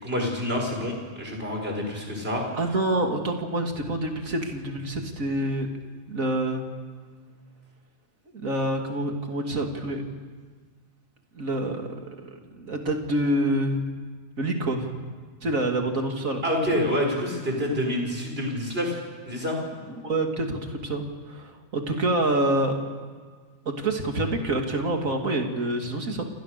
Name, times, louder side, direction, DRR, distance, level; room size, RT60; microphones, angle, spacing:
voice 1, 0.0-2.4 16.4-19.0 19.3-19.6, left 1 dB, 45° right, 1 dB, 6.5 m, -27 dB
voice 2, 2.6-5.7 6.1-6.6 8.3-10.0 11.3-13.8 14.4-14.9 15.4-16.4 19.9-22.8 23.6-26.2, right 1 dB, 90° right, 3 dB, 3.0 m, -27 dB
28.0 x 28.0 x 6.8 m, 1.6 s
omnidirectional pair, 1.4 m